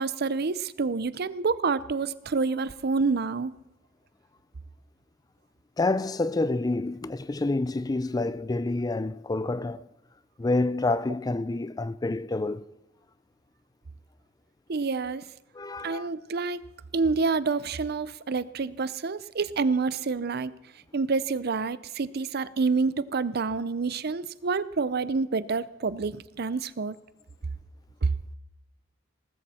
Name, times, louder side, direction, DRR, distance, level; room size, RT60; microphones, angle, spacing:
voice 1, 0.0-3.5 14.7-15.2 15.8-16.6 16.9-20.5 20.9-27.0 28.0-28.1, right 4 dB, 55° right, 0.6 m, -28 dB
voice 2, 5.8-9.8 10.4-12.6 15.5-16.1, left 2 dB, 20° left, 0.4 m, -28 dB
19.0 x 14.0 x 4.3 m
head